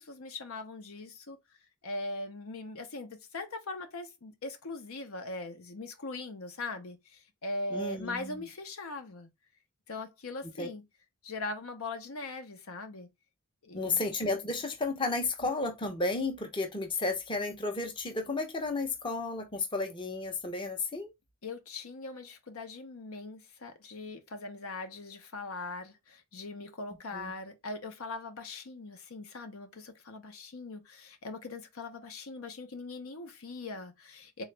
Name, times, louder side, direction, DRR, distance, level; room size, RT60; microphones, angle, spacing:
voice 1, 0.0-1.4 1.8-9.3 9.9-10.8 11.2-13.1 13.6-14.0 21.4-34.4, left 2 dB, 70° left, 0.7 m, -41 dB
voice 2, 7.7-8.4 10.6-10.7 13.7-21.1 27.1-27.3, left 3 dB, 20° left, 0.7 m, -33 dB
3.9 x 2.3 x 3.2 m
head